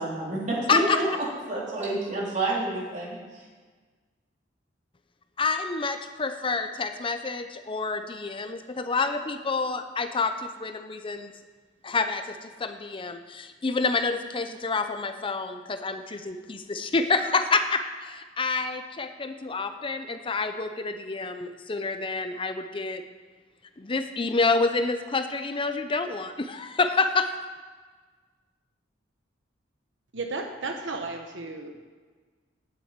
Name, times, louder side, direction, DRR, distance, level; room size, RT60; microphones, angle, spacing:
voice 1, 0.0-3.4, right 2 dB, 45° right, -5 dB, 3.6 m, -29 dB
voice 2, 5.4-11.3 11.8-23.0 23.8-27.3, left 4 dB, 30° left, 8 dB, 0.6 m, -28 dB
voice 3, 30.1-31.7, right 3 dB, 90° right, 4 dB, 1.2 m, -34 dB
9.5 x 7.7 x 8.8 m, 1.4 s
head